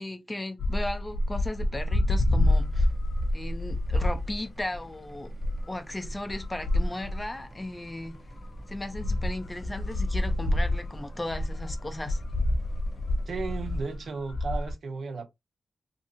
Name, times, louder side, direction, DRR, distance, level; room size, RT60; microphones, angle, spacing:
voice 1, 0.0-2.9 3.3-5.3 5.7-8.2 8.7-12.2, left 1 dB, 20° left, 0.6 m, -36 dB
sound 1, 0.6-4.8 5.3-7.3 8.1-8.2 8.4-14.7, left 1 dB, 75° left, 0.3 m, -27 dB
sound 2, 2.5-14.0, equal, 30° right, 0.8 m, -49 dB
voice 2, 13.3-15.3, right 4 dB, 70° right, 0.5 m, -34 dB
2.6 x 2.6 x 2.6 m
cardioid pair, 80°, 0 cm